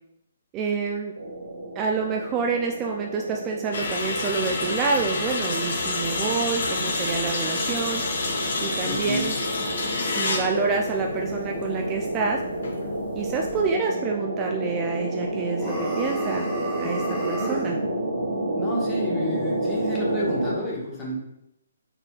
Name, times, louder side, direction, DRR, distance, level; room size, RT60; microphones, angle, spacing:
voice 1, 0.5-1.1 1.8-8.0 8.6-9.4 10.0-12.4 13.1-16.5 16.8-17.8, right 5 dB, 20° right, 1 dB, 0.3 m, -28 dB
sound 1, 1.2-20.5, right 1 dB, 75° right, 1.2 m, -30 dB
sound 2, 3.7-13.6, left 3 dB, 60° left, 0.8 m, -29 dB
voice 2, 8.8-9.3 18.6-21.2, left 1 dB, 20° left, -4 dB, 1.2 m, -30 dB
sound 3, 15.5-17.8, right 1 dB, ahead, 1.0 m, -31 dB
4.1 x 3.9 x 2.3 m, 0.80 s
figure-of-eight pair, 140°, 0 cm